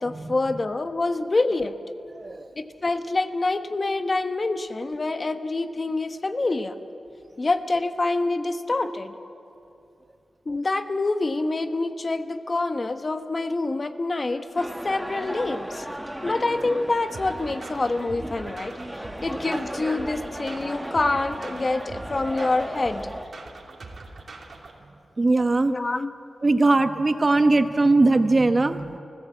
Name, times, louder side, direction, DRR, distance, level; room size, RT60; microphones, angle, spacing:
voice 1, 0.0-1.8 2.6-6.7 7.4-9.1 10.5-15.9 16.2-23.1 25.7-26.1, left 2 dB, 40° left, 9 dB, 1.1 m, -26 dB
voice 2, 2.1-2.5 25.2-25.7 26.4-29.0, right 2 dB, 35° right, 9 dB, 1.0 m, -20 dB
sound 1, 14.6-23.2, equal, 5° right, 1.2 m, -35 dB
sound 2, 17.1-24.7, right 3 dB, 60° right, 2.9 m, -42 dB
28.5 x 15.5 x 8.4 m, 2.7 s
wide cardioid pair, 95°, 0 cm